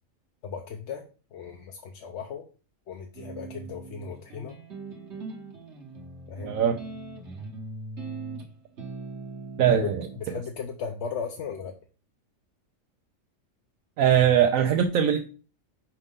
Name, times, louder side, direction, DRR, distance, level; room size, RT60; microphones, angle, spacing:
voice 1, 0.4-1.0 1.3-2.4 2.9-4.6 6.3-6.6 9.7-9.9 10.2-11.7, left 6 dB, 60° left, 3 dB, 0.9 m, -36 dB
sound 1, 3.1-10.2, right 3 dB, 60° right, 1.4 m, -40 dB
voice 2, 6.4-6.8 9.6-10.1 14.0-15.3, right 9 dB, 85° right, 5 dB, 1.0 m, -21 dB
5.6 x 5.2 x 3.6 m, 0.36 s
omnidirectional pair, 1.4 m